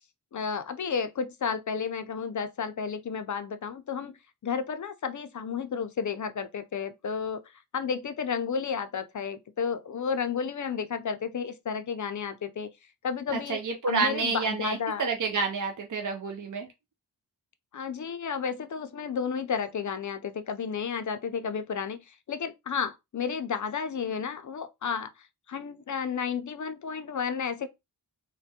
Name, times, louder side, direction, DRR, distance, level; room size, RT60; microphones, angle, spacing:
voice 1, 0.3-4.2 4.4-7.4 7.7-12.7 13.0-13.6 13.9-15.0 17.7-27.7, left 6 dB, 45° left, 0.5 m, -32 dB
voice 2, 13.3-16.7, right 4 dB, 50° right, 0.5 m, -29 dB
3.3 x 2.2 x 2.7 m
wide cardioid pair, 80°, 41 cm